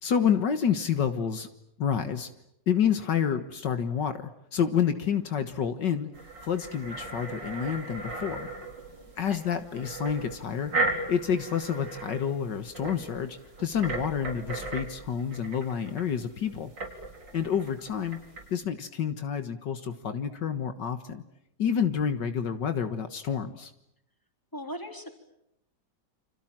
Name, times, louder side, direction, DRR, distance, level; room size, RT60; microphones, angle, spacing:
voice 1, 0.0-1.5 1.8-2.3 2.7-4.2 4.5-6.1 6.4-8.5 9.2-10.7 11.1-16.7 17.3-18.2 18.5-21.2 21.6-23.7, left 8 dB, 70° left, 9 dB, 2.1 m, -28 dB
sound 1, 6.1-18.5, right 3 dB, 75° right, 4.9 m, -37 dB
voice 2, 24.5-25.1, equal, 10° left, 4 dB, 4.0 m, -38 dB
28.5 x 26.5 x 7.5 m, 0.81 s
omnidirectional pair, 2.0 m